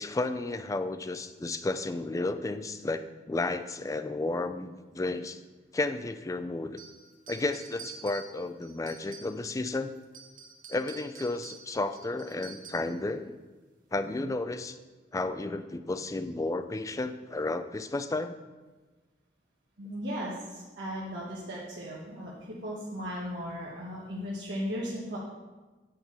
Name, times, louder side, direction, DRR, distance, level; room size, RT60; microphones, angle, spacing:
voice 1, 0.0-5.4 5.7-6.8 7.3-9.9 10.7-13.4 13.9-14.8 15.1-18.4, left 2 dB, 20° left, 10 dB, 0.3 m, -32 dB
sound 1, 6.8-9.7 10.0-13.0, right 6 dB, 45° right, 0.9 m, -48 dB
voice 2, 19.8-25.2, equal, 70° right, -6 dB, 1.3 m, -36 dB
9.0 x 4.6 x 5.5 m, 1.3 s
head